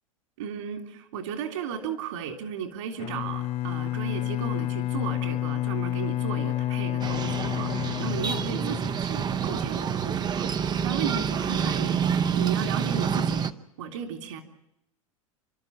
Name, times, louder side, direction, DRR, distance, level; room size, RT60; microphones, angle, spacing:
voice 1, 0.4-13.5 13.8-14.4, right 7 dB, 65° right, 5 dB, 3.4 m, -35 dB
Bowed string instrument, 3.0-9.0, left 14 dB, 35° left, 0.7 m, -29 dB
sound 1, 7.0-13.5, right 7 dB, 25° right, 0.9 m, -27 dB
29.5 x 13.0 x 8.8 m, 0.84 s
hypercardioid pair, 90°, 17 cm